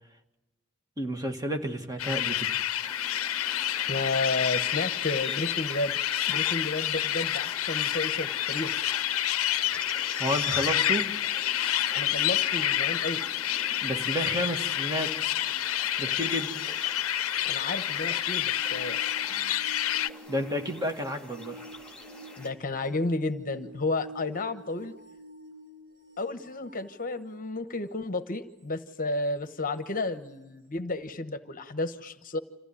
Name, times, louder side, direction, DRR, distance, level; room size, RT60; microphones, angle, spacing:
voice 1, 1.0-2.5 10.0-11.1 13.8-15.2 16.0-16.6 19.3-19.6 20.3-21.6, equal, 15° right, 1.9 m, -31 dB
sound 1, 2.0-20.1, left 12 dB, 70° left, 0.7 m, -29 dB
sound 2, 2.8-22.5, left 2 dB, 5° left, 3.8 m, -46 dB
voice 2, 3.9-6.0 6.3-8.8 11.9-13.2 17.5-19.0 22.4-24.9 26.2-32.4, left 2 dB, 40° left, 1.1 m, -32 dB
sound 3, 17.9-27.7 30.0-30.1, right 1 dB, 55° right, 4.2 m, -48 dB
26.5 x 15.5 x 9.8 m
head